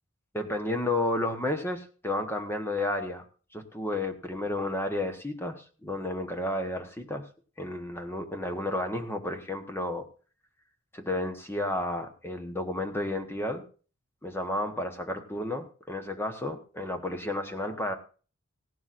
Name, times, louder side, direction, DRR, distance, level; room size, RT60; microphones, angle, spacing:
voice 1, 0.3-3.2 3.5-7.3 7.6-10.1 10.9-13.6 14.2-17.9, left 1 dB, 10° left, 6 dB, 1.0 m, -32 dB
17.0 x 12.0 x 2.5 m, 0.38 s
head